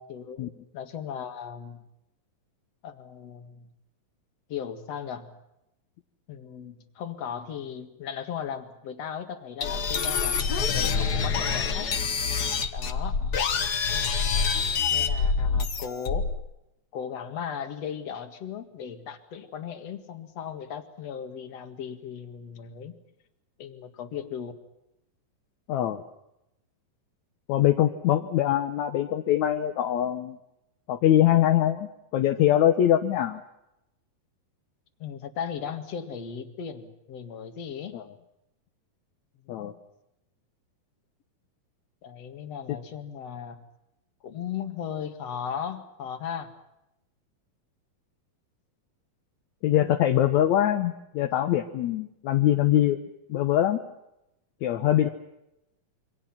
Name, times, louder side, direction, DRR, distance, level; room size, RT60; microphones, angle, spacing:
voice 1, 0.1-1.8 2.8-3.7 4.5-5.3 6.3-11.9 12.7-13.2 14.9-16.3 16.9-22.9 23.6-24.5 35.0-37.9 39.5-39.7 42.0-43.6 44.2-46.5 55.0-55.1, left 8 dB, 50° left, 8 dB, 2.7 m, -37 dB
sound 1, 9.6-16.4, left 5 dB, 80° left, 0.9 m, -26 dB
voice 2, 25.7-26.0 27.5-30.4 30.9-33.4 37.9-38.0 39.5-39.7 42.7-42.8 49.6-53.0 53.3-53.8 54.6-55.1, left 12 dB, 65° left, 6 dB, 2.1 m, -23 dB
28.0 x 24.5 x 5.8 m, 0.87 s
omnidirectional pair, 4.1 m